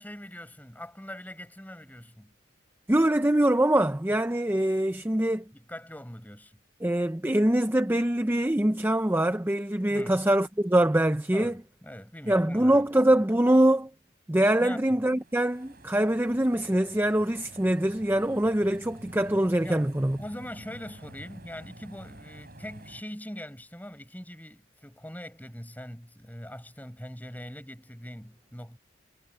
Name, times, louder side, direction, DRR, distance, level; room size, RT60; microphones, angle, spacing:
voice 1, 0.0-2.3 5.5-6.6 9.9-10.2 11.3-12.8 14.6-15.0 19.6-19.9 20.2-28.8, equal, 10° left, 6.7 m, -42 dB
voice 2, 2.9-5.4 6.8-11.5 12.3-13.9 14.3-20.2, right 1 dB, 10° right, 0.6 m, -24 dB
sound 1, 15.0-23.0, right 1 dB, 45° right, 6.6 m, -49 dB
head